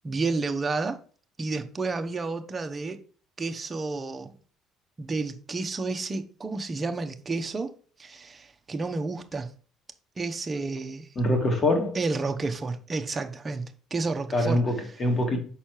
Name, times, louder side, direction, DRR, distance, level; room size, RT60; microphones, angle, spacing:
voice 1, 0.0-1.0 1.4-3.0 3.4-4.3 5.0-7.7 8.0-9.5 10.2-11.1 11.9-14.6, right 3 dB, 30° right, 0.9 m, -31 dB
voice 2, 11.2-12.0 14.3-15.4, left 1 dB, 35° left, 2.1 m, -24 dB
5.8 x 4.3 x 4.6 m
supercardioid pair, 80°, 0 cm